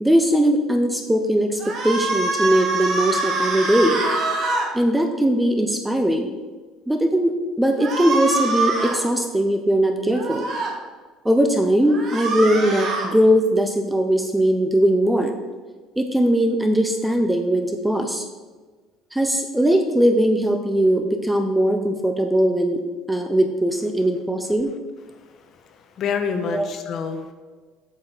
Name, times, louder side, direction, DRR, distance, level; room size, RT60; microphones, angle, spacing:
voice 1, 0.0-4.0 4.7-6.3 6.9-10.4 11.2-15.3 16.0-18.3 19.1-22.8 23.1-24.7 26.5-26.7, right 1 dB, 5° right, 5 dB, 0.5 m, -20 dB
sound 1, 1.6-4.7 7.8-9.0 10.1-10.7 11.9-13.1, right 3 dB, 40° right, 1.7 m, -24 dB
voice 2, 25.6-27.3, left 6 dB, 40° left, 6 dB, 1.0 m, -27 dB
8.5 x 6.7 x 4.4 m, 1.4 s
cardioid pair, 155°, 0 cm